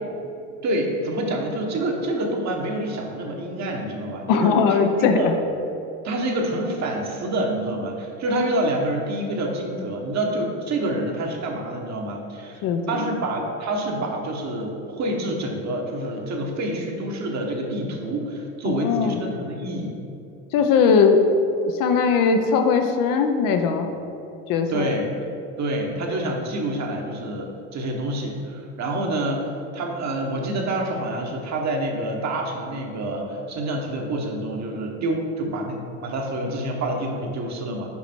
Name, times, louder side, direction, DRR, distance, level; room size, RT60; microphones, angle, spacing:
voice 1, 0.6-5.3 6.0-19.9 24.7-25.1 25.6-37.9, right 1 dB, 45° right, 1 dB, 1.2 m, -27 dB
voice 2, 4.3-5.3 12.6-13.0 18.6-19.2 20.5-21.2 21.6-23.9 24.5-24.9, left 5 dB, 60° left, 5 dB, 0.7 m, -19 dB
5.8 x 5.0 x 4.4 m, 2.7 s
supercardioid pair, 85°, 38 cm